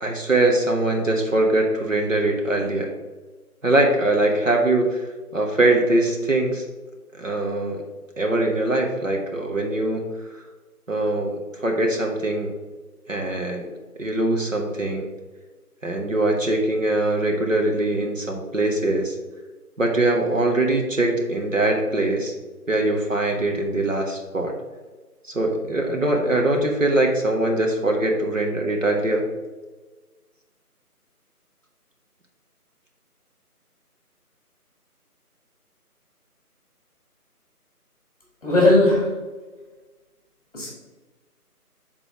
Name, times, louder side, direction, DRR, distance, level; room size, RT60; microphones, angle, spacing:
voice 1, 0.0-2.9 3.6-5.0 5.3-6.6 7.2-7.8 8.2-10.0 10.9-12.5 13.1-13.7 14.0-15.1 15.8-19.1 19.8-22.3 22.7-24.5 25.3-29.2, right 2 dB, 55° right, 2 dB, 1.1 m, -22 dB
voice 2, 38.4-39.1 40.5-40.7, left 1 dB, 25° left, -3 dB, 1.7 m, -17 dB
6.4 x 4.0 x 4.9 m, 1.3 s
figure-of-eight pair, 160°, 46 cm